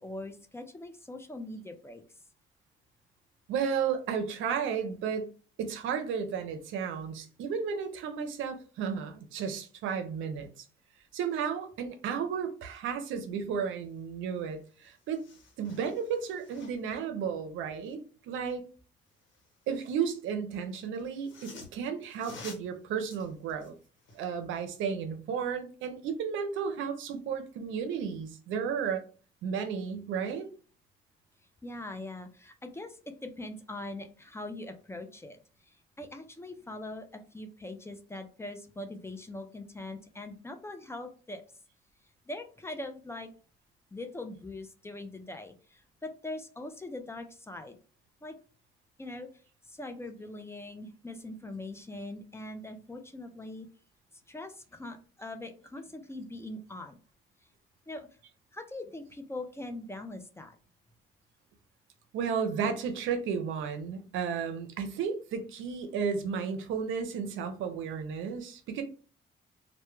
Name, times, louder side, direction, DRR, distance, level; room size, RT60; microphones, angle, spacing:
voice 1, 0.0-2.0 31.6-35.4 35.7-41.4 42.3-43.3 43.9-47.8 48.2-48.4 49.0-49.3 49.6-53.7 54.3-57.0 57.9-58.1 58.5-60.6, left 2 dB, 15° left, 6 dB, 0.3 m, -42 dB
voice 2, 3.5-5.3 5.6-10.5 11.1-15.2 15.6-18.6 19.7-23.7 24.1-29.0 29.4-30.5 62.1-68.8, right 6 dB, 85° right, 7 dB, 0.5 m, -33 dB
sound 1, 14.4-14.5 14.7-17.0 19.1-20.2 21.0-24.3 24.8-24.9, left 3 dB, 75° left, 1.1 m, -52 dB
2.1 x 2.1 x 3.0 m, 0.38 s
cardioid pair, 90°, 20 cm